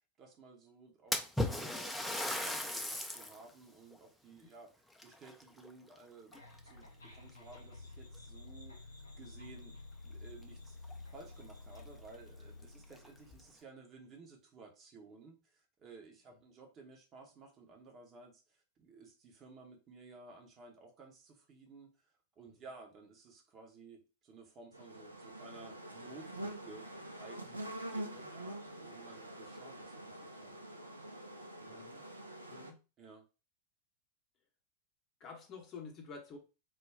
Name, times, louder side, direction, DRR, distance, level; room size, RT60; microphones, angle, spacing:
voice 1, 0.2-4.7 5.0-10.8 11.1-21.9 22.4-26.9 27.2-30.7 31.6-31.8 33.0-33.3, right 4 dB, 30° right, 2 dB, 0.8 m, -56 dB
Splash splatter, 1.1-3.4 3.9-4.0 4.9-6.0 6.3-6.8 7.6-7.7 8.1-8.2 10.4-10.5 10.8-10.9 11.5-11.6 12.0-12.1 12.8-13.4, left 1 dB, 5° left, 0.4 m, -37 dB
sound 1, 6.3-13.5, left 2 dB, 80° left, 0.6 m, -52 dB
sound 2, 24.7-32.7, right 1 dB, 85° right, 0.4 m, -46 dB
voice 2, 31.7-32.1 32.5-32.8 35.2-36.4, left 5 dB, 30° left, 2 dB, 0.8 m, -50 dB
2.3 x 2.2 x 3.4 m, 0.31 s
figure-of-eight pair, 90°, 0 cm